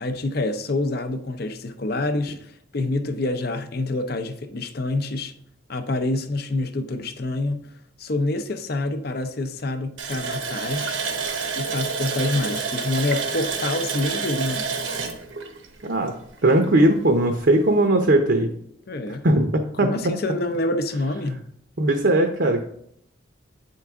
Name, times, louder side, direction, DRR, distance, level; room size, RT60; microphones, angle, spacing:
voice 1, 0.0-5.3 5.7-7.7 8.0-11.0 11.6-14.8 18.9-19.3 19.8-21.4, left 2 dB, 50° left, 0.6 m, -27 dB
Water tap faucet, 10.0-16.5 16.8-16.9 17.4-17.5, right 5 dB, 80° right, 1.0 m, -28 dB
voice 2, 15.8-16.1 16.4-18.5 19.2-19.5 19.8-19.9 21.8-22.6, right 1 dB, 55° right, 0.7 m, -18 dB
8.6 x 4.6 x 3.6 m
head